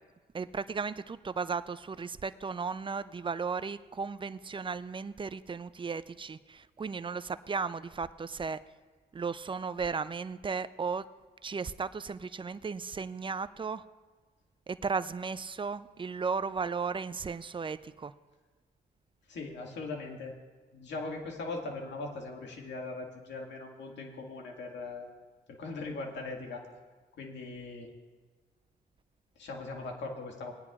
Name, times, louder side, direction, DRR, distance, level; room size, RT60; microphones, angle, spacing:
voice 1, 0.3-8.6 9.1-11.1 11.4-13.8 14.7-18.1, right 5 dB, 25° right, 15 dB, 0.4 m, -35 dB
voice 2, 19.3-20.3 20.7-25.1 25.6-26.6 27.2-27.9 29.4-30.5, left 3 dB, 75° left, 1 dB, 1.9 m, -40 dB
19.5 x 9.9 x 2.4 m, 1.4 s
cardioid pair, 75°, 19 cm